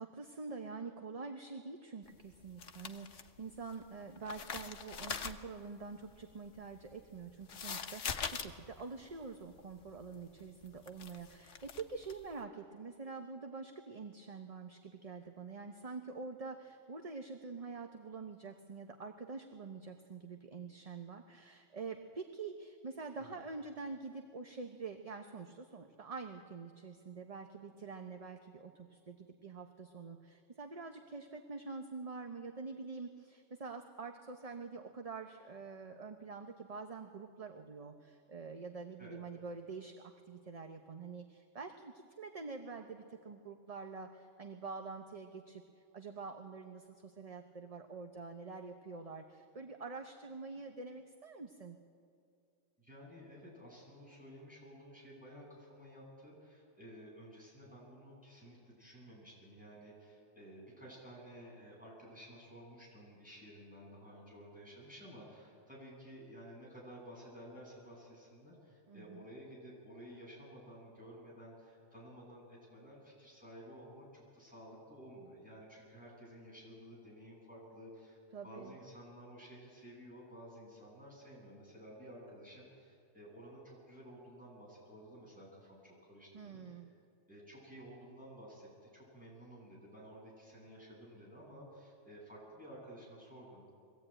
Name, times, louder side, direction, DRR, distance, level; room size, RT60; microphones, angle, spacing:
voice 1, 0.0-45.6 45.9-51.8 68.9-69.3 78.3-78.8 86.3-86.9, right 4 dB, 30° right, 4 dB, 0.9 m, -46 dB
sound 1, 2.1-3.8 4.1-12.3, left 6 dB, 75° left, 1.3 m, -43 dB
voice 2, 52.8-78.2 78.4-86.8 87.3-93.7, equal, 5° right, -5 dB, 7.8 m, -53 dB
22.5 x 15.5 x 8.9 m, 2.4 s
omnidirectional pair, 1.3 m